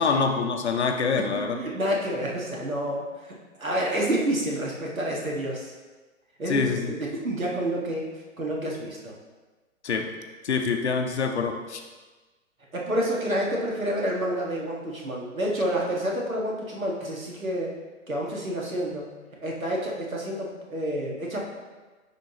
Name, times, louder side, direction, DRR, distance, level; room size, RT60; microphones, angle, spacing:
voice 1, 0.0-1.6 6.5-6.9 9.8-10.1 10.4-11.8, left 5 dB, 55° left, 4 dB, 0.8 m, -25 dB
voice 2, 1.2-5.7 6.4-8.1 8.4-9.1 12.7-17.7 18.1-19.1 19.4-21.4, right 1 dB, 75° right, -2 dB, 1.7 m, -29 dB
10.5 x 3.7 x 2.9 m, 1.3 s
figure-of-eight pair, 130°, 41 cm